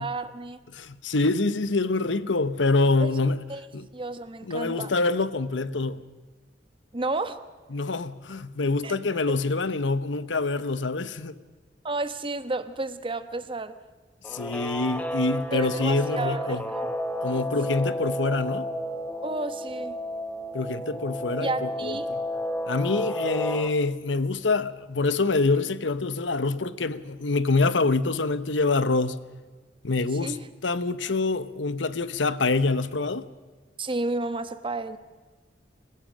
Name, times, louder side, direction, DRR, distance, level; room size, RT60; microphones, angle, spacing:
voice 1, 0.0-0.6 3.0-3.1 3.5-3.7 3.9-4.9 6.9-7.4 8.8-8.9 11.8-13.7 15.5-16.9 19.2-20.0 21.4-22.1 30.2-30.4 33.8-35.0, right 2 dB, 30° right, 1.2 m, -31 dB
voice 2, 0.7-3.4 3.7-3.8 4.4-6.0 7.7-11.4 14.3-16.6 17.2-18.7 20.5-22.2 22.7-29.2 29.8-30.4 30.6-33.3, left 3 dB, 90° left, 1.0 m, -26 dB
Guitar, 14.2-23.7, equal, 10° left, 1.4 m, -32 dB
27.5 x 16.0 x 6.4 m
head